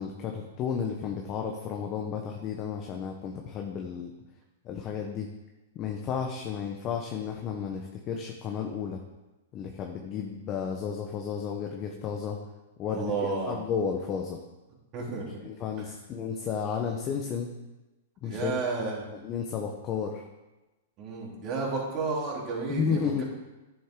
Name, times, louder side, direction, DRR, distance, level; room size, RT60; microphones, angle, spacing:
voice 1, 0.0-4.1 4.6-5.3 5.7-9.0 9.5-12.4 12.8-14.4 15.4-17.5 18.2-18.5 19.1-20.2 22.7-23.2, left 6 dB, 35° left, 2 dB, 1.1 m, -32 dB
voice 2, 12.9-13.6 14.9-15.2 18.2-19.0 21.0-23.1, right 4 dB, 40° right, -3 dB, 3.5 m, -31 dB
11.0 x 7.3 x 3.8 m, 1.1 s
hypercardioid pair, 120°, 0 cm